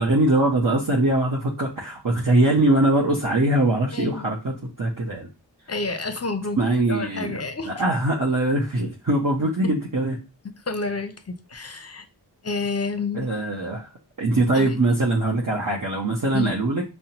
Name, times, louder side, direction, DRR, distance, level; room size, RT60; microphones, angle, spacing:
voice 1, 0.0-5.3 6.6-7.4 7.7-10.2 13.1-13.9 14.2-16.8, right 2 dB, 50° right, 0.9 m, -22 dB
voice 2, 3.9-4.3 5.7-6.6 6.9-7.7 10.7-12.0 12.4-13.3 14.5-14.7 16.3-16.5, left 3 dB, 35° left, 0.6 m, -29 dB
5.5 x 2.2 x 2.8 m
wide cardioid pair, 50°, 43 cm